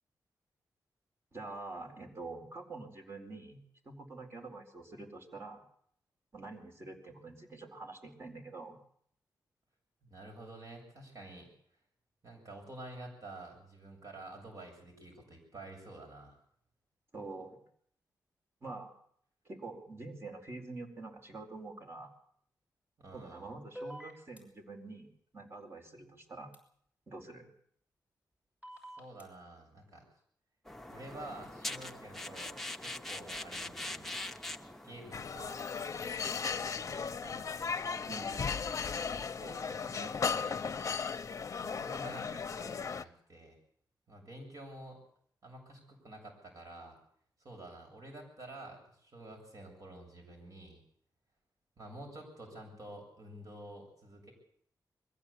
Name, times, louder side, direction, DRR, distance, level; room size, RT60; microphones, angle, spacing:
voice 1, 1.3-5.6 6.3-8.8 17.1-17.6 18.6-18.9 19.4-22.1 23.1-26.5 27.1-27.5 38.1-38.6, right 3 dB, 35° right, 3 dB, 4.5 m, -46 dB
voice 2, 10.0-11.5 12.2-16.4 23.0-23.5 29.0-30.0 30.9-34.1 34.8-35.6 36.1-37.5 39.0-40.9 41.6-43.6 44.1-45.0 45.4-47.0 47.4-50.8 51.8-54.3, right 1 dB, 50° right, 0 dB, 7.6 m, -49 dB
sound 1, 23.7-24.4 26.5-26.6 28.6-29.2, equal, 15° right, 6.0 m, -45 dB
sound 2, 30.7-35.7, left 1 dB, 5° left, 1.0 m, -43 dB
sound 3, 35.1-43.0, left 5 dB, 45° left, 0.8 m, -36 dB
22.0 x 15.5 x 8.6 m, 0.65 s
wide cardioid pair, 145°, 7 cm